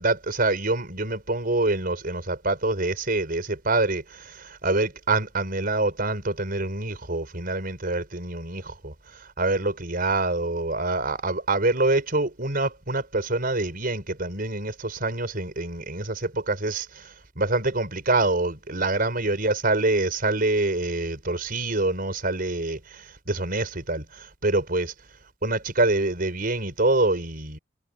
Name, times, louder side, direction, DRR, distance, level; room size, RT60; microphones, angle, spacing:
voice 1, 0.0-24.9 25.4-27.6, right 2 dB, 50° right, 4.9 m, -26 dB
head